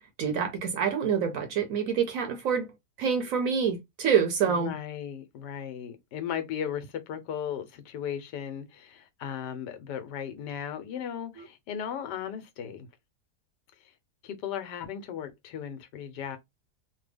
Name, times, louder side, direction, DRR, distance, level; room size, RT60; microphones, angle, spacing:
voice 1, 0.2-2.7 3.0-4.7, right 7 dB, 65° right, 0.9 m, -26 dB
voice 2, 4.4-12.9 14.2-16.4, left 8 dB, 85° left, 1.3 m, -36 dB
3.2 x 2.2 x 3.3 m
omnidirectional pair, 1.8 m